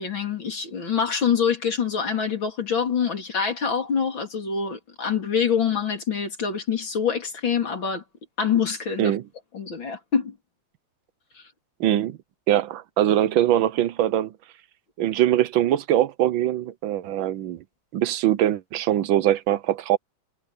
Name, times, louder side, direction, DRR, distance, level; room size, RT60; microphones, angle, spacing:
voice 1, 0.0-8.0 8.4-9.1 9.5-10.4 11.4-11.5, left 6 dB, 70° left, 4.1 m, -25 dB
voice 2, 11.8-12.2 12.5-14.3 15.0-17.6 17.9-20.0, right 12 dB, 75° right, 1.5 m, -22 dB
omnidirectional pair, 2.2 m